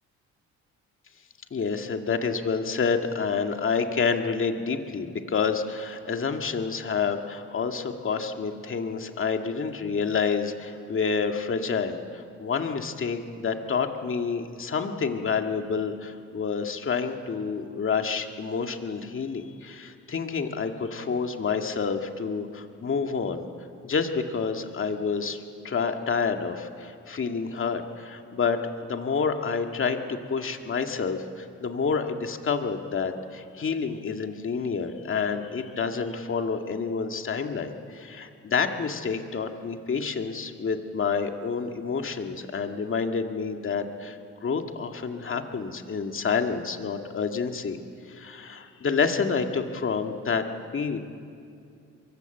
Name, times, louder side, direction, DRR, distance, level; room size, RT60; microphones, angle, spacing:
voice 1, 1.5-23.5 23.8-47.8 48.1-50.4 50.7-51.0, left 5 dB, 45° left, 5 dB, 2.1 m, -28 dB
23.5 x 23.0 x 8.0 m, 2.5 s
cardioid pair, 90°, 30 cm